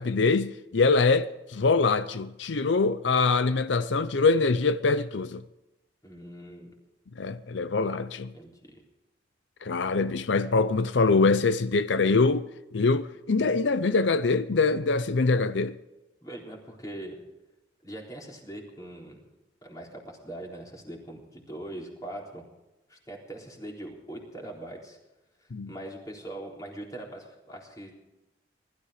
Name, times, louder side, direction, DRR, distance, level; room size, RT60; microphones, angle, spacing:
voice 1, 0.0-5.4 7.2-8.3 9.6-12.4 12.7-15.8 25.5-25.7, left 4 dB, 90° left, 0.6 m, -24 dB
voice 2, 6.0-6.7 8.3-8.8 16.2-17.2 17.8-19.3 19.6-22.4 22.9-25.0 25.4-27.9, right 1 dB, 20° left, 3.8 m, -41 dB
20.0 x 13.5 x 5.0 m
head